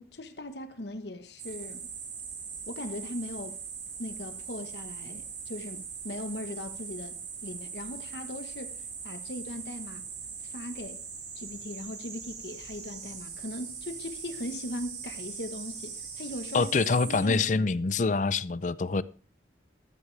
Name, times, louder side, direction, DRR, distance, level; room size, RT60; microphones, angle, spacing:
voice 1, 0.0-1.9 2.7-3.6 4.0-10.1 10.4-11.1 11.3-16.7 17.1-17.7, left 1 dB, 70° left, 1.3 m, -39 dB
sound 1, 1.4-17.2, right 6 dB, 70° right, 4.0 m, -41 dB
voice 2, 16.5-19.0, left 4 dB, 45° left, 0.5 m, -25 dB
13.5 x 12.5 x 3.4 m
head